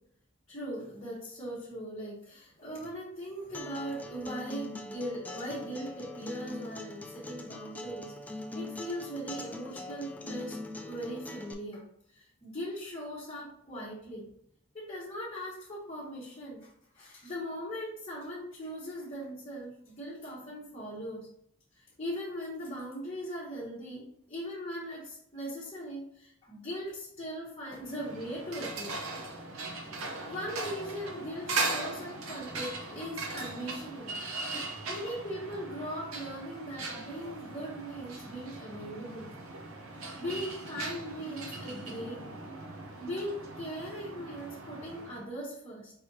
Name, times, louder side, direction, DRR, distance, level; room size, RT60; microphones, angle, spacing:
voice 1, 0.5-11.8 12.4-14.3 14.7-21.3 22.0-29.0 30.2-34.1 34.9-39.4 39.9-42.3 43.0-45.9, equal, 30° left, -7 dB, 1.0 m, -39 dB
Acoustic guitar, 3.5-11.5, left 2 dB, 5° left, 0.3 m, -42 dB
sound 1, 27.8-45.3, right 3 dB, 70° right, 0.7 m, -39 dB
4.8 x 3.3 x 2.8 m, 0.71 s
head